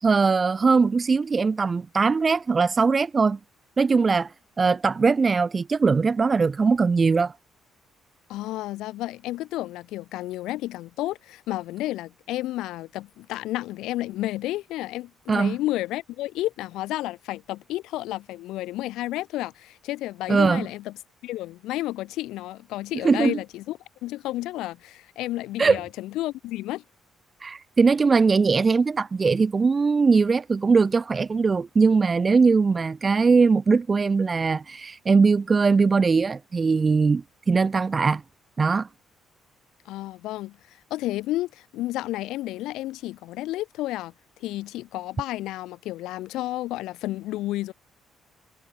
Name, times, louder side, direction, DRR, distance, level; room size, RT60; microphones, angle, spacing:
voice 1, 0.0-3.4 3.8-4.3 4.6-7.3 15.3-15.6 20.3-20.7 23.0-23.4 25.6-25.8 27.4-38.2 38.6-38.9, right 4 dB, 35° right, 3.1 m, -20 dB
voice 2, 8.3-20.9 21.2-26.8 39.9-44.1 44.4-47.7, left 16 dB, 85° left, 7.1 m, -31 dB
cardioid pair, 80°, 0 cm